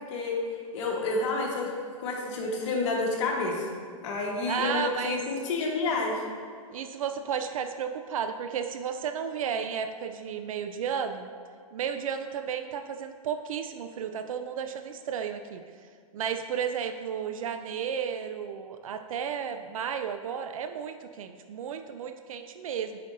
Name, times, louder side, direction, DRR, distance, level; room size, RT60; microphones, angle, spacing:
voice 1, 0.7-1.7 2.0-3.7 4.0-6.2, left 3 dB, 55° left, -1 dB, 1.4 m, -29 dB
voice 2, 4.5-5.2 6.7-11.3 11.7-15.6 16.1-23.0, right 7 dB, 70° right, 7 dB, 0.4 m, -33 dB
8.3 x 5.2 x 2.6 m, 2.2 s
hypercardioid pair, 120°, 18 cm